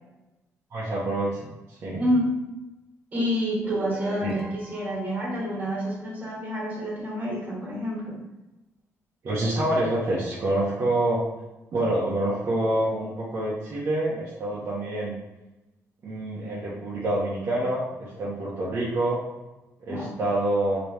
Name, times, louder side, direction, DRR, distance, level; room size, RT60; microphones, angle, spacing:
voice 1, 0.7-1.5 1.8-2.0 4.2-4.4 9.2-11.2 11.7-15.2 16.0-19.2 19.9-20.8, right 1 dB, 45° right, -7 dB, 0.8 m, -26 dB
voice 2, 2.0-2.4 3.1-8.2 19.9-20.1, equal, 25° right, -4 dB, 1.4 m, -28 dB
sound 1, 3.6-5.1, equal, 5° right, 0.4 m, -43 dB
3.1 x 2.9 x 3.1 m, 1.0 s
cardioid pair, 150°, 6 cm